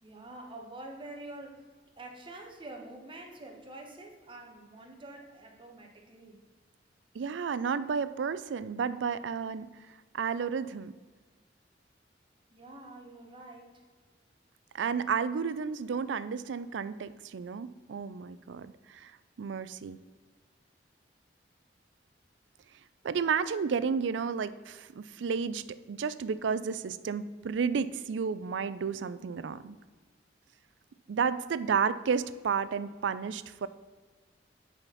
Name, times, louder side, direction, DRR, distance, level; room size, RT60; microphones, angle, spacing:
voice 1, 0.0-1.6 2.0-6.4 12.5-13.8 29.9-30.0 31.2-31.6, right 2 dB, 30° right, 1 dB, 1.2 m, -47 dB
voice 2, 7.1-9.7 10.1-10.9 14.7-19.1 19.4-20.0 23.0-29.8 31.1-33.7, right 6 dB, 85° right, 15 dB, 0.4 m, -32 dB
8.9 x 4.3 x 5.6 m, 1.4 s
head